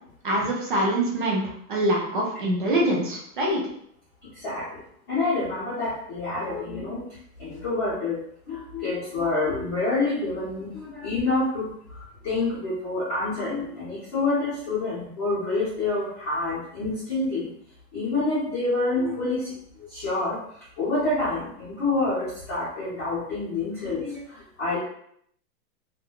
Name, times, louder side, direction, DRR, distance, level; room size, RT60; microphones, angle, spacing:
voice 1, 0.2-1.4 1.7-3.6, right 1 dB, 35° right, -2 dB, 0.4 m, -24 dB
voice 2, 4.3-4.8 5.1-7.0 7.4-8.2 8.5-11.7 12.2-17.5 17.9-19.5 19.8-20.4 20.8-24.8, left 3 dB, 15° left, -14 dB, 0.6 m, -27 dB
3.4 x 2.2 x 2.2 m, 0.69 s
hypercardioid pair, 170°, 49 cm